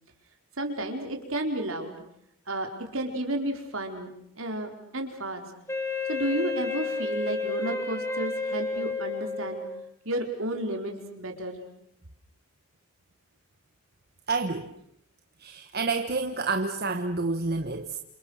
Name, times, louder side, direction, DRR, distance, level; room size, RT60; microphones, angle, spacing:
voice 1, 0.6-2.0 2.5-5.4 6.1-9.6 10.0-11.6, right 1 dB, 60° right, 3 dB, 4.4 m, -32 dB
Wind instrument woodwind instrument, 5.7-9.9, left 3 dB, 10° left, 2.7 m, -31 dB
voice 2, 14.3-14.7 15.4-18.0, right 3 dB, 45° right, 6 dB, 1.3 m, -29 dB
29.0 x 28.0 x 6.5 m, 0.75 s
head